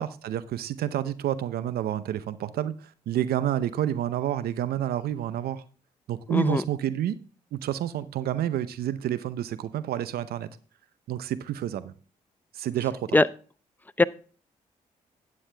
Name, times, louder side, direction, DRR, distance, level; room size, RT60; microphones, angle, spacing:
voice 1, 0.0-5.6 6.1-7.2 7.5-10.5 11.1-11.9 12.5-13.2, right 11 dB, 75° right, 0.7 m, -29 dB
voice 2, 6.3-6.6 13.1-13.3 14.0-14.1, left 2 dB, 10° left, 0.6 m, -20 dB
9.2 x 8.5 x 3.4 m
supercardioid pair, 50°, 16 cm